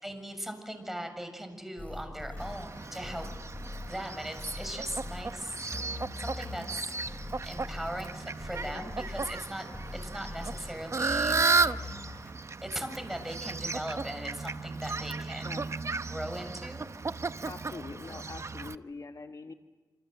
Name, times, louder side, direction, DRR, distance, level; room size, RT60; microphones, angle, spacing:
voice 1, 0.0-3.3 3.9-5.6 6.2-6.9 7.4-11.8 12.6-15.7 16.1-16.9, equal, 5° right, 6 dB, 7.0 m, -39 dB
sound 1, 1.8-12.3, left 2 dB, 20° left, 4.9 m, -42 dB
Fowl, 2.4-18.7, right 4 dB, 45° right, 1.0 m, -34 dB
voice 2, 17.5-19.5, left 4 dB, 55° left, 6 dB, 1.4 m, -43 dB
28.0 x 27.0 x 7.9 m, 1.3 s
cardioid pair, 60°, 7 cm